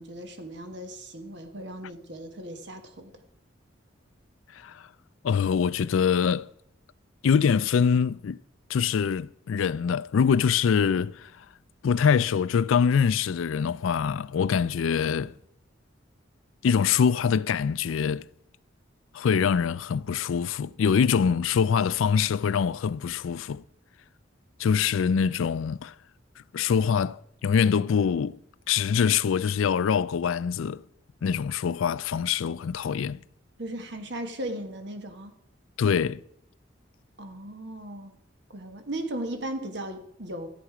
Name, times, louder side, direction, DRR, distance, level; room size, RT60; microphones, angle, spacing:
voice 1, 0.0-3.2 33.6-35.4 37.2-38.1 38.5-40.5, right 1 dB, 60° right, 1.5 m, -37 dB
voice 2, 4.5-4.9 5.2-6.5 7.2-8.4 8.7-11.5 11.8-15.3 16.6-18.3 19.1-23.6 24.6-25.9 26.5-28.4 28.7-30.8 31.2-33.2 35.8-36.2, left 6 dB, 90° left, 0.4 m, -24 dB
14.0 x 8.4 x 4.9 m
head